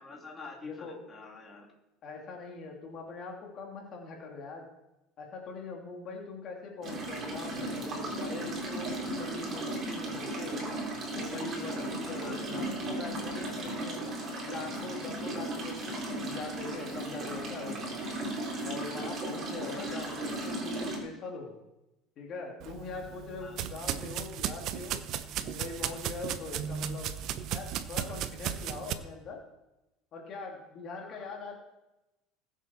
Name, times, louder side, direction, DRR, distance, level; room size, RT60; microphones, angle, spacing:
voice 1, 0.0-1.7 12.2-12.5 19.7-20.1 23.4-23.8 31.0-31.3, left 4 dB, 20° left, -2 dB, 2.6 m, -47 dB
voice 2, 0.6-1.0 2.0-4.7 5.2-10.7 11.1-14.0 14.4-18.0 18.6-21.6 22.2-25.0 25.4-27.1 27.5-29.4 30.1-31.6, left 4 dB, 45° left, 0 dB, 2.2 m, -42 dB
sound 1, 6.8-21.0, right 1 dB, 35° right, 3.6 m, -36 dB
sound 2, 22.6-28.9, right 9 dB, 50° right, 0.8 m, -35 dB
20.0 x 7.5 x 4.2 m, 0.96 s
cardioid pair, 140°, 0 cm